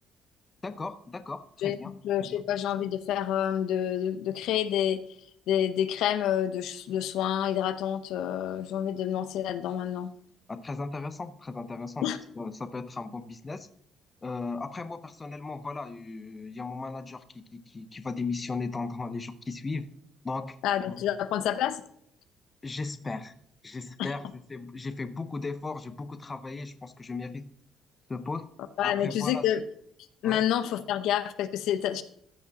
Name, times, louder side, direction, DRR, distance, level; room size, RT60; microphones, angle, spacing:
voice 1, 0.6-1.9 2.2-2.4 10.5-12.1 12.4-13.7 14.2-19.9 20.2-20.6 20.9-21.1 22.6-23.3 23.6-27.5 28.1-28.5 28.8-29.4 30.2-30.5, left 3 dB, 20° left, 11 dB, 0.6 m, -36 dB
voice 2, 1.6-5.0 5.5-10.1 12.0-12.2 20.6-21.8 24.0-24.1 28.8-29.6 30.2-32.0, left 10 dB, 80° left, 12 dB, 0.7 m, -28 dB
14.5 x 5.0 x 4.0 m, 0.67 s
cardioid pair, 130°, 0 cm